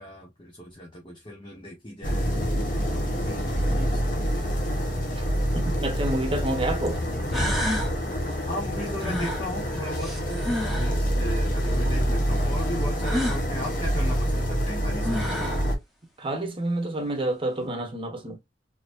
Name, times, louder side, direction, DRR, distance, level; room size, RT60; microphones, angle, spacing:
voice 1, 0.0-4.3 8.5-15.5, left 1 dB, 25° left, 1.2 m, -37 dB
sound 1, 2.0-15.8, equal, 50° left, 1.1 m, -26 dB
voice 2, 5.5-7.0 15.4-15.6 16.2-18.4, right 1 dB, 30° right, 1.1 m, -29 dB
sound 2, 6.9-7.0 7.3-7.9 9.0-11.0 13.0-13.4 14.7-14.8 15.0-15.7, equal, ahead, 1.3 m, -29 dB
4.1 x 3.1 x 2.6 m
head